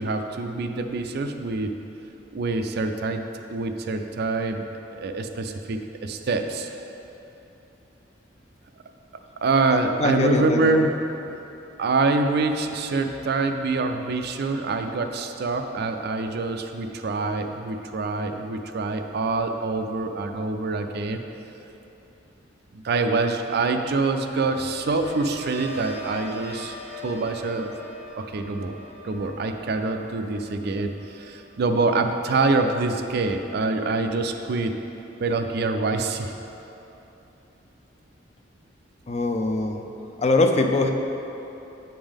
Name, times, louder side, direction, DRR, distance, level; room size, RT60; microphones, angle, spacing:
voice 1, 0.0-1.7 2.3-3.2 3.5-4.6 5.0-6.7 9.4-11.0 11.8-21.2 22.8-26.8 27.0-27.7 28.1-28.7 29.0-34.7 35.2-36.3, right 3 dB, 60° right, 6 dB, 0.4 m, -25 dB
voice 2, 10.0-10.8 39.1-39.8 40.2-40.9, left 2 dB, 35° left, 4 dB, 0.4 m, -22 dB
sound 1, 24.5-34.2 34.6-35.0, left 1 dB, 85° left, 0.9 m, -42 dB
7.9 x 5.3 x 3.5 m, 3.0 s
head